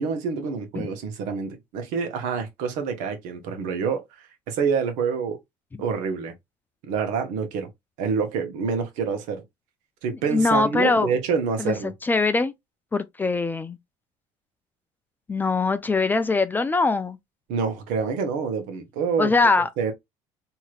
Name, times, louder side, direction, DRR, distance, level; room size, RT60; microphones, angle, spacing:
voice 1, 0.0-5.4 5.8-6.3 6.8-7.7 8.0-9.4 10.0-11.9 17.5-19.3 19.8-19.9, right 5 dB, 80° right, 1.0 m, -27 dB
voice 2, 10.3-11.1 11.6-11.7 12.0-12.5 12.9-13.8 15.3-17.2 19.2-19.7, left 3 dB, 15° left, 0.3 m, -22 dB
3.1 x 2.8 x 2.4 m
cardioid pair, 120°, 13 cm